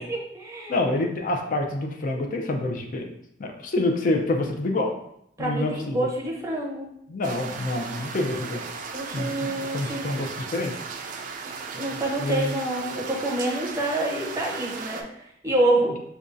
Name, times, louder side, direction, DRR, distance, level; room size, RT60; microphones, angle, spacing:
voice 1, 0.0-0.7 5.4-6.9 8.9-10.1 11.7-16.0, right 1 dB, 15° right, -2 dB, 0.7 m, -27 dB
voice 2, 0.7-3.1 3.4-4.9 5.4-6.1 7.1-8.7 9.1-10.7 12.2-12.5, left 2 dB, 50° left, 3 dB, 0.5 m, -27 dB
sound 1, 7.2-15.0, right 5 dB, 45° right, 0.3 m, -36 dB
5.1 x 2.3 x 2.5 m, 0.75 s
head